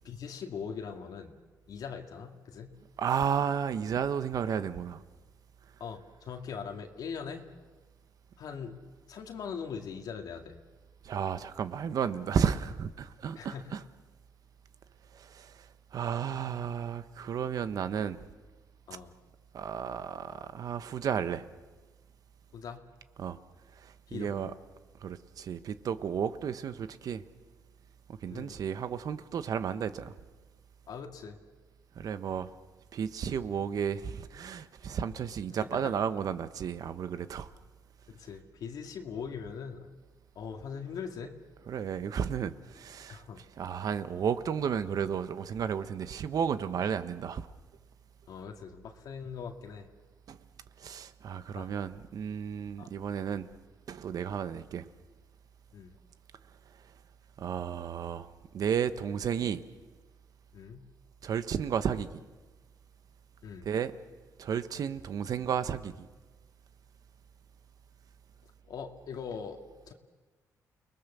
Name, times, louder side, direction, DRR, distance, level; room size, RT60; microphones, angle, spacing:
voice 1, 0.0-1.3 1.7-2.7 5.8-7.5 8.4-8.8 9.1-10.5 13.4-13.7 18.9-19.1 22.5-22.8 24.1-24.5 28.3-28.6 30.9-31.4 35.6-35.9 38.1-39.9 40.4-41.3 43.1-43.4 48.3-49.9 51.6-51.7 52.8-52.9 55.7-55.9 60.5-60.8 63.4-63.7 68.7-69.6 69.9-70.0, left 6 dB, 75° left, 2.2 m, -41 dB
voice 2, 3.0-5.0 11.0-13.8 15.1-18.2 19.5-21.4 23.2-23.4 23.8-24.5 25.0-27.2 28.1-30.1 31.9-32.5 32.9-37.5 41.7-47.5 50.3-50.4 50.8-53.5 53.9-54.9 57.4-59.6 61.2-62.2 63.6-63.9 64.4-66.1, right 7 dB, 65° right, 1.2 m, -33 dB
30.0 x 20.5 x 6.9 m
cardioid pair, 95°, 7 cm